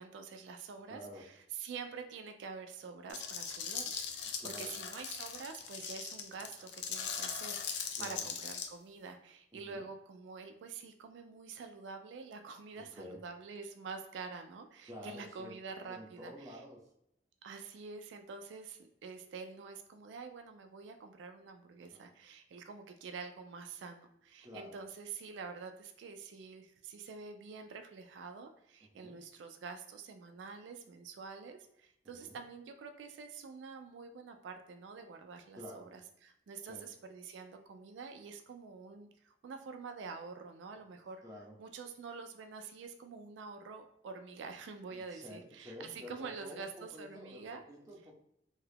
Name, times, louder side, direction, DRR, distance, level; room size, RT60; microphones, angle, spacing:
voice 1, 0.0-16.6 17.4-41.2 41.6-47.6, right 5 dB, 90° right, 6 dB, 0.3 m, -47 dB
voice 2, 0.9-1.2 4.4-4.7 8.0-8.3 9.6-9.8 12.8-13.2 14.9-15.6 15.8-16.8 21.9-22.1 24.4-24.8 28.8-29.2 32.2-32.4 35.6-35.9 36.7-36.9 41.2-41.6 44.9-48.1, left 1 dB, 20° right, -2 dB, 0.6 m, -50 dB
sound 1, 3.1-8.7, left 7 dB, 75° left, 0.4 m, -40 dB
2.7 x 2.3 x 3.3 m, 0.78 s
head